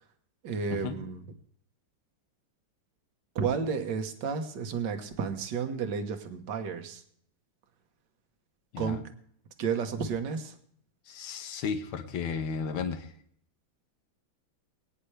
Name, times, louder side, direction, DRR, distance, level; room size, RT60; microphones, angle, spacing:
voice 1, 0.4-1.2 3.4-7.0 8.8-9.0 9.6-10.6, right 6 dB, 60° right, 7 dB, 1.8 m, -32 dB
voice 2, 8.7-9.0 11.1-13.1, left 6 dB, 80° left, 7 dB, 1.9 m, -34 dB
22.5 x 9.6 x 3.3 m, 0.64 s
omnidirectional pair, 2.3 m